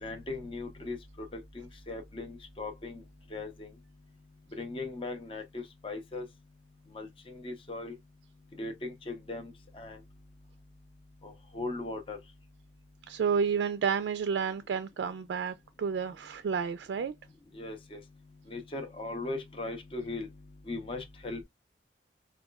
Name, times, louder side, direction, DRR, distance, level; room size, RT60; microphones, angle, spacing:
voice 1, 0.0-3.0 3.3-3.7 4.6-6.3 6.9-7.9 8.6-10.0 11.2-12.2 17.5-18.0 18.5-20.3 20.7-21.4, left 2 dB, 30° left, 0.6 m, -39 dB
voice 2, 13.1-17.1, right 6 dB, 80° right, 0.3 m, -30 dB
4.7 x 2.3 x 2.2 m
head